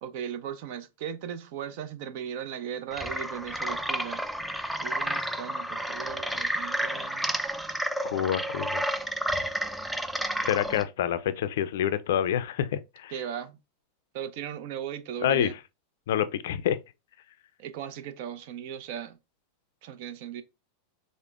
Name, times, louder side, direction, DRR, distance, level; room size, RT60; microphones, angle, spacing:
voice 1, 0.0-4.2 4.8-7.3 13.1-13.6 14.1-15.5 17.6-19.2 19.8-20.4, right 9 dB, 60° right, 0.6 m, -37 dB
sound 1, 2.9-10.8, right 1 dB, 5° right, 0.3 m, -31 dB
voice 2, 8.0-8.8 10.4-13.1 15.2-15.5 16.1-16.8, left 10 dB, 75° left, 0.4 m, -27 dB
5.0 x 2.1 x 2.3 m
hypercardioid pair, 120°, 0 cm